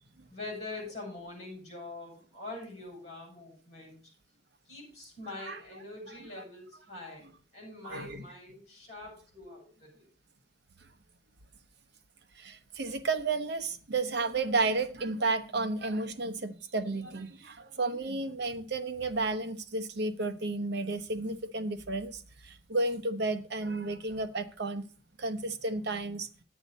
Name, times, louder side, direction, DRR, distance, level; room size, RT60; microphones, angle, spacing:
voice 1, 0.3-4.0 4.7-10.1, left 2 dB, 35° left, 6.9 m, -44 dB
voice 2, 7.8-8.2 12.4-24.9 25.2-26.3, right 3 dB, 55° right, 0.9 m, -32 dB
9.9 x 9.3 x 4.1 m
head